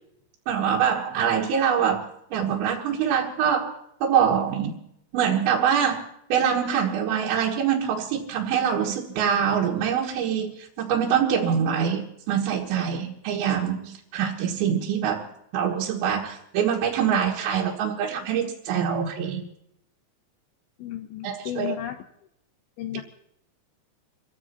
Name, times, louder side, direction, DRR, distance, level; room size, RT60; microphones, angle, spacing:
voice 1, 0.5-2.1 2.3-3.7 4.0-4.7 5.1-6.0 6.3-19.4 21.2-21.7, right 8 dB, 85° right, -3 dB, 3.8 m, -24 dB
voice 2, 20.8-22.0 22.8-23.0, left 12 dB, 80° left, 8 dB, 2.3 m, -33 dB
28.5 x 16.0 x 2.8 m, 0.78 s
omnidirectional pair, 5.1 m